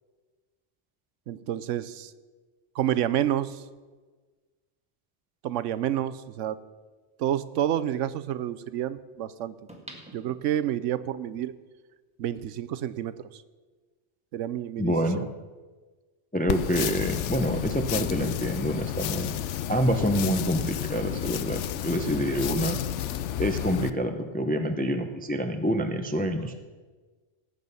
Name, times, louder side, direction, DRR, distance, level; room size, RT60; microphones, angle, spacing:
voice 1, 1.3-2.1 2.8-3.6 5.4-6.6 7.2-9.6 10.1-11.5 12.2-13.4 14.3-15.3, right 11 dB, 85° right, 14 dB, 1.0 m, -29 dB
sound 1, 9.7-11.0 11.5-11.6, right 1 dB, 5° right, 1.6 m, -47 dB
voice 2, 14.8-15.3 16.3-19.3 19.7-22.8 23.4-26.5, equal, 10° left, 6 dB, 0.5 m, -27 dB
sound 2, 16.5-23.9, left 11 dB, 75° left, 0.9 m, -31 dB
18.0 x 8.3 x 5.4 m, 1.4 s
omnidirectional pair, 1.2 m